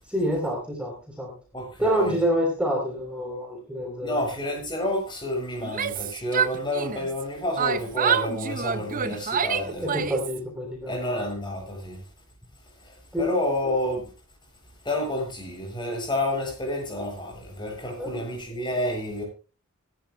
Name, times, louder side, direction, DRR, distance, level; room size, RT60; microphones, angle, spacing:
voice 1, 0.1-1.3 1.8-4.2 9.9-11.1 13.1-13.3 18.0-18.2, equal, 5° right, 0 dB, 3.5 m, -27 dB
voice 2, 1.5-2.1 4.0-10.0 10.9-12.0 12.8-14.1 14.8-19.2, left 1 dB, 20° left, 1 dB, 7.5 m, -29 dB
Yell, 5.6-7.2 7.6-10.4, right 7 dB, 40° right, 0.7 m, -27 dB
25.5 x 11.5 x 2.2 m, 0.33 s
head